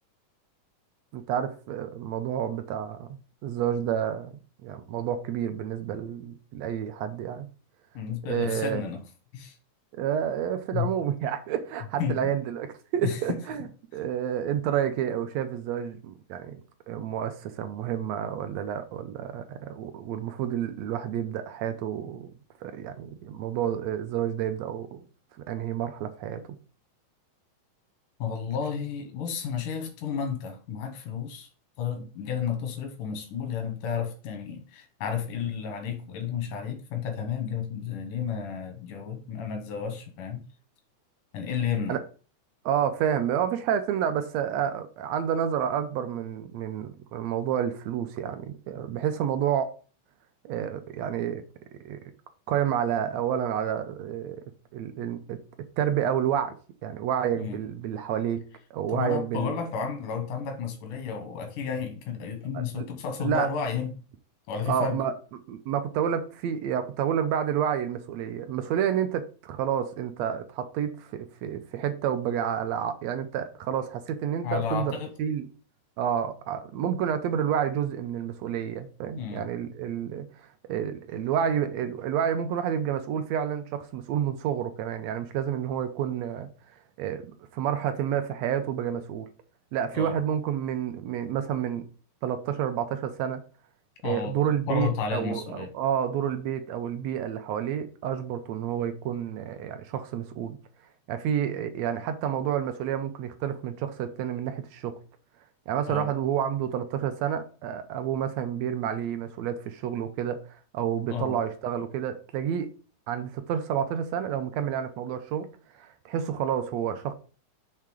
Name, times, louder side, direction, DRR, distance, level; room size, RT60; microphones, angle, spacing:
voice 1, 1.1-4.3 4.6-7.5 8.3-8.9 9.9-13.7 13.9-16.6 16.9-22.3 22.6-25.0 25.5-26.4 41.9-42.0 42.6-49.7 50.4-51.4 51.8-52.0 52.5-54.4 54.7-56.6 56.8-58.4 58.7-59.5 62.5-62.9 63.2-63.5 64.7-65.1 65.5-75.5 76.0-86.5 87.0-89.3 89.7-91.8 92.2-93.4 94.0-100.6 101.1-105.0 105.7-112.7 113.1-115.5 115.8-117.1, right 9 dB, 75° right, 1.7 m, -29 dB
voice 2, 7.9-9.0 9.3-9.6 10.7-10.9 12.0-12.3 13.0-13.4 28.2-31.5 31.8-40.4 41.3-42.0 57.4-57.6 58.9-64.0 64.5-65.0 74.4-75.1 79.2-79.5 89.9-90.2 94.0-95.7 105.9-106.1 111.1-111.4, left 7 dB, 90° left, 2.8 m, -32 dB
6.6 x 3.6 x 6.2 m
omnidirectional pair, 3.6 m